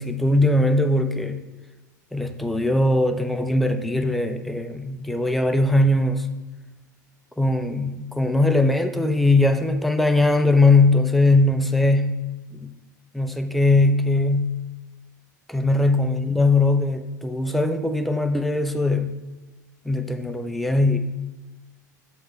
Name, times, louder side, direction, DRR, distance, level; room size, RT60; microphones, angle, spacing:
voice 1, 0.0-1.4 2.1-6.3 7.4-12.2 12.6-12.7 13.1-14.6 15.5-19.2 19.9-21.0, left 2 dB, ahead, 6 dB, 0.4 m, -20 dB
7.7 x 3.2 x 4.3 m, 1.1 s
figure-of-eight pair, 80°, 10 cm